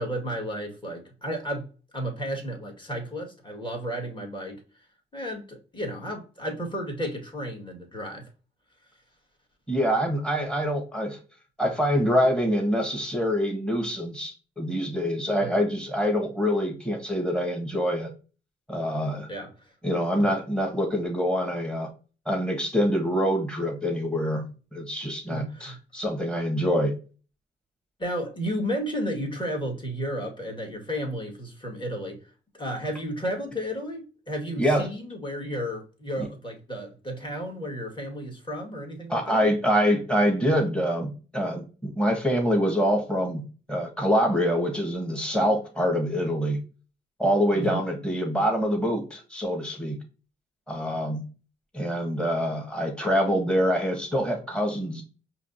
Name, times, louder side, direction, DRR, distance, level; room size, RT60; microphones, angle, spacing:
voice 1, 0.0-1.7 1.9-4.6 5.1-8.3 15.4-15.5 19.3-19.5 25.3-25.8 28.0-32.2 32.5-39.4 47.5-47.8, equal, 25° left, 1.9 m, -33 dB
voice 2, 9.7-11.2 11.6-18.1 18.7-19.3 19.8-21.9 22.2-26.9 34.6-34.9 36.2-36.3 39.1-46.6 47.2-50.0 50.7-51.2 51.7-55.0, equal, 5° left, 1.5 m, -25 dB
5.0 x 2.9 x 2.7 m
supercardioid pair, 60°, 19 cm